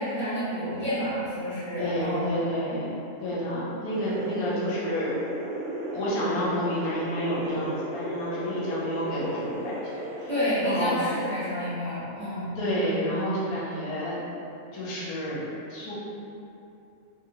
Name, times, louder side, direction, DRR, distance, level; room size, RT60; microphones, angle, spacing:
voice 1, 0.0-2.4 10.3-12.6, equal, 10° left, -16 dB, 1.2 m, -29 dB
voice 2, 1.8-5.1 5.9-9.7 10.2-10.3 10.6-11.0 12.6-14.2 14.7-15.4 15.7-15.9, equal, 80° left, -8 dB, 1.2 m, -30 dB
sound 1, 3.9-10.8, right 1 dB, 65° right, 0.9 m, -34 dB
2.8 x 2.6 x 2.7 m, 2.7 s
omnidirectional pair, 1.6 m